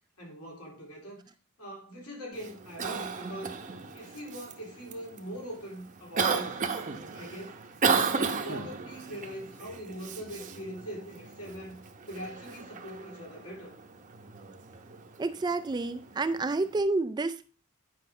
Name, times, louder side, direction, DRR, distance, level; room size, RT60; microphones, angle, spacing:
voice 1, 0.2-1.2 1.6-3.6 3.9-6.6 7.1-7.7 8.1-11.8 12.1-13.7, equal, 75° left, 3.5 m, -42 dB
Cough, 2.3-16.8, right 5 dB, 35° right, 0.8 m, -35 dB
voice 2, 15.2-17.5, right 3 dB, 20° right, 0.3 m, -29 dB
9.5 x 5.2 x 3.7 m
head